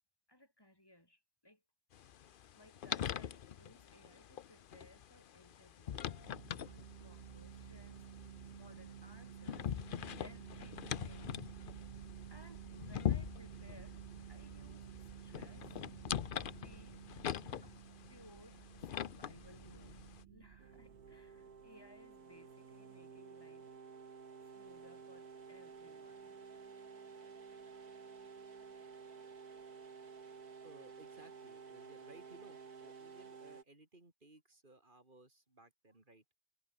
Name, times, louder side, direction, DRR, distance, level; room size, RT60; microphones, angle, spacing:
voice 1, 0.3-1.6 2.6-6.0 6.3-9.7 10.2-11.3 12.3-14.9 15.2-15.7 16.6-17.0 17.6-17.8 18.1-23.7 24.5-28.9, left 1 dB, 15° left, 5.9 m, -63 dB
sound 1, 1.9-20.2, left 9 dB, 70° left, 0.4 m, -43 dB
sound 2, 5.9-22.2, right 8 dB, 50° right, 0.7 m, -52 dB
sound 3, 20.6-33.6, right 5 dB, 70° right, 2.6 m, -53 dB
voice 2, 30.6-36.2, right 2 dB, 30° right, 3.8 m, -61 dB
omnidirectional pair, 1.7 m